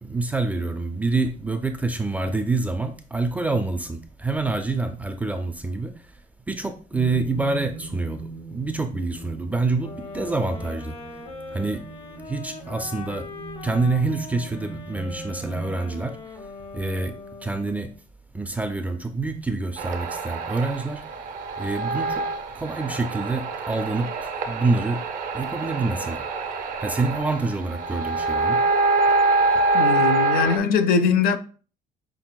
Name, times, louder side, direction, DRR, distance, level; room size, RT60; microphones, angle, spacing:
voice 1, 0.0-6.2 6.5-11.0 11.5-11.8 12.2-13.3 13.6-16.5 16.7-17.9 18.3-21.2 21.6-22.3 22.5-25.1 25.3-26.3 26.8-28.6, right 3 dB, 10° right, 0.3 m, -27 dB
sound 1, 6.9-15.7, right 4 dB, 85° left, 1.8 m, -41 dB
sound 2, 9.8-18.0, left 3 dB, 40° left, 0.9 m, -40 dB
sound 3, 19.8-30.6, right 3 dB, 55° right, 0.6 m, -25 dB
voice 2, 29.7-31.4, left 6 dB, 65° left, 0.5 m, -21 dB
6.1 x 3.3 x 2.2 m
cardioid pair, 170°, 16 cm